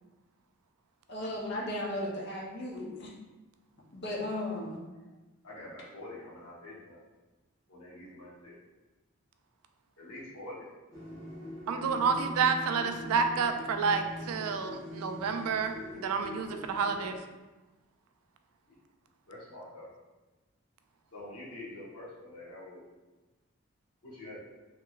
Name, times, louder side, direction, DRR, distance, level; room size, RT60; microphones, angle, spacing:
voice 1, 1.1-3.1 3.9-4.8, left 1 dB, 50° left, -3 dB, 0.6 m, -35 dB
voice 2, 5.4-7.0 7.7-8.5 10.0-10.7 11.7-12.1 19.3-19.9 21.1-22.8 24.0-24.4, left 1 dB, 80° left, -7 dB, 1.1 m, -46 dB
sound 1, 10.9-17.2, equal, 15° left, 0.8 m, -43 dB
voice 3, 11.7-17.2, right 5 dB, 85° right, 7 dB, 0.3 m, -29 dB
2.9 x 2.9 x 2.3 m, 1.2 s
head